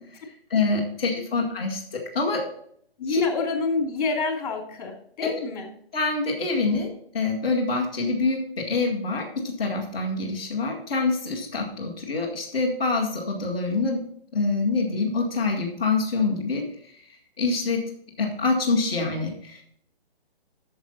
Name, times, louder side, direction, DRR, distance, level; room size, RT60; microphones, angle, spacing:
voice 1, 0.2-2.5 3.1-3.2 5.2-5.3 5.9-14.0 14.3-16.7 17.4-17.8 18.2-19.6, left 3 dB, 5° left, -9 dB, 0.4 m, -26 dB
voice 2, 3.0-5.7, left 3 dB, 40° left, 2 dB, 2.7 m, -27 dB
10.0 x 7.0 x 4.0 m, 0.66 s
hypercardioid pair, 165°, 30 cm